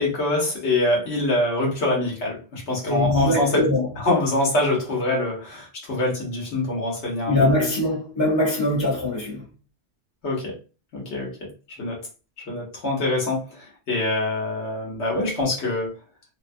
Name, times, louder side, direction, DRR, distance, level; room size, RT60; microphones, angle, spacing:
voice 1, 0.0-3.6 4.0-7.6 10.2-10.6 10.9-12.0 12.4-16.0, left 2 dB, 75° left, 1.2 m, -25 dB
voice 2, 2.9-3.9 7.3-9.4, left 1 dB, 25° left, 1.2 m, -22 dB
2.7 x 2.1 x 2.5 m
omnidirectional pair, 1.1 m